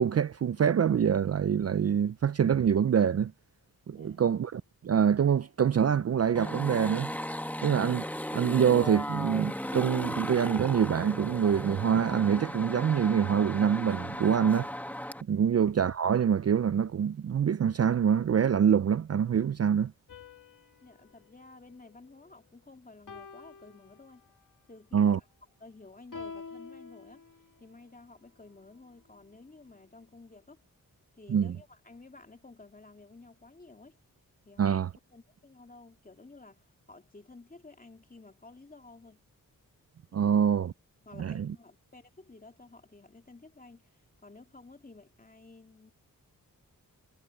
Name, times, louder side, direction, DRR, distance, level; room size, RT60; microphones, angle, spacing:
voice 1, 0.0-3.3 3.9-7.1 7.6-8.0 8.3-14.7 15.3-19.9 24.9-25.2 31.3-31.5 34.6-34.9 40.1-40.7 41.2-41.5, right 8 dB, 45° right, 0.4 m, -25 dB
sound 1, 6.3-15.2, left 1 dB, 5° left, 1.4 m, -36 dB
sound 2, 20.1-22.5 23.1-24.6 26.1-27.8, left 4 dB, 60° left, 2.9 m, -48 dB
voice 2, 20.8-24.2 24.7-25.3 25.6-27.2 27.6-30.6 31.2-34.0 34.4-34.8 35.1-39.2 40.1-40.3 41.0-45.9, left 3 dB, 25° left, 2.5 m, -53 dB
wide cardioid pair, 125°, 35 cm